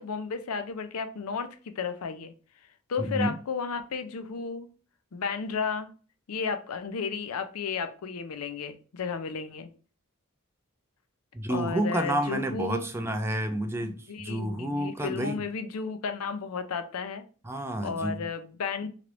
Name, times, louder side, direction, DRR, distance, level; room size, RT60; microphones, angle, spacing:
voice 1, 0.0-2.3 2.9-4.7 5.1-5.9 6.3-9.7 11.5-12.9 13.8-17.2 17.8-18.9, left 5 dB, 90° left, 0.5 m, -33 dB
voice 2, 3.0-3.4 11.3-15.4 17.4-18.3, right 1 dB, 10° right, 0.3 m, -30 dB
3.1 x 3.0 x 2.5 m
head